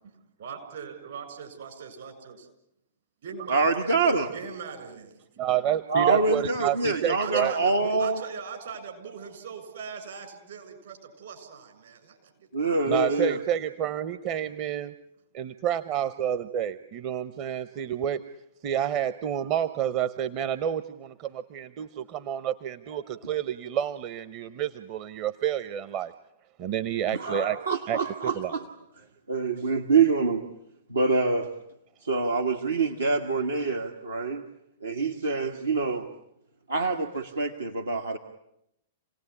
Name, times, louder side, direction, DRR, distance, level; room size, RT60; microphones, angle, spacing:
voice 1, 0.4-2.5 3.2-3.9 4.3-5.1 7.2-12.3 12.6-13.2, right 6 dB, 65° right, 5 dB, 7.1 m, -40 dB
voice 2, 3.5-4.3 5.9-8.2 12.5-13.4 27.1-28.6 29.3-30.4 30.9-31.5 32.0-34.4 34.8-36.1 36.7-38.2, right 4 dB, 85° right, 3 dB, 1.8 m, -25 dB
voice 3, 5.4-7.5 12.9-14.9 15.3-18.3 18.6-26.1 26.6-27.6 27.9-28.0 28.4-28.5, right 10 dB, 40° right, 12 dB, 0.9 m, -29 dB
29.0 x 18.5 x 9.9 m, 0.81 s
figure-of-eight pair, 110°, 0 cm